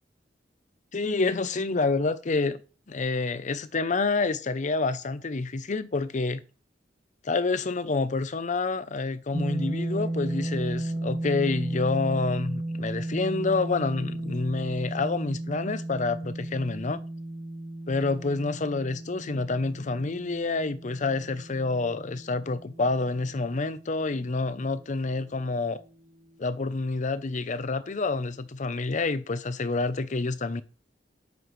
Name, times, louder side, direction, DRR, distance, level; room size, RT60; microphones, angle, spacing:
voice 1, 0.9-2.6 2.9-6.4 7.2-17.0 17.9-25.8 26.4-30.6, left 3 dB, 45° left, 0.6 m, -28 dB
sound 1, 9.3-25.3, right 1 dB, 50° right, 2.8 m, -35 dB
9.1 x 7.0 x 3.2 m
head